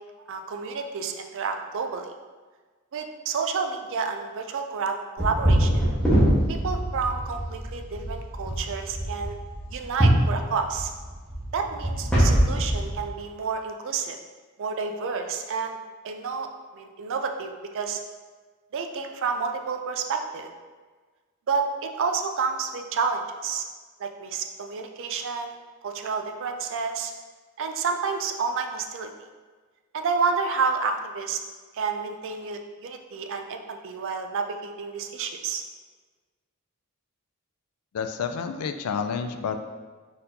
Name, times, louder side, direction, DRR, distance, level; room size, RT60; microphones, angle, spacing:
voice 1, 0.3-2.1 2.9-5.9 6.5-9.3 9.7-10.9 11.5-14.2 14.6-15.8 16.0-16.5 16.7-18.0 18.7-20.5 21.5-23.6 24.0-25.6 25.8-27.1 27.6-29.1 29.9-31.4 31.7-35.6, right 5 dB, 60° right, 5 dB, 0.4 m, -30 dB
sound 1, 5.2-13.0, right 1 dB, 5° left, 1.1 m, -23 dB
voice 2, 37.9-39.6, left 6 dB, 80° left, 8 dB, 0.4 m, -29 dB
4.2 x 4.1 x 2.6 m, 1.4 s
head